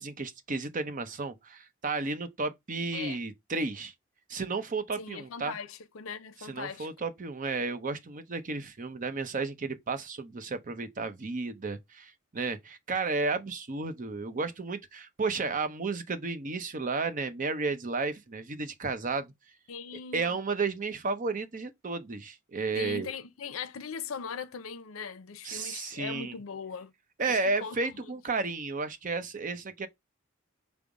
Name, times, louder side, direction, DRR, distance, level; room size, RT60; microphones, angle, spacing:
voice 1, 0.0-3.9 4.3-5.5 6.4-19.3 20.1-23.1 25.4-26.4 27.2-29.9, right 3 dB, 40° right, 0.6 m, -33 dB
voice 2, 5.0-6.9 19.7-20.4 22.7-26.9 27.3-28.1, left 5 dB, 85° left, 0.6 m, -40 dB
5.2 x 2.0 x 4.8 m
head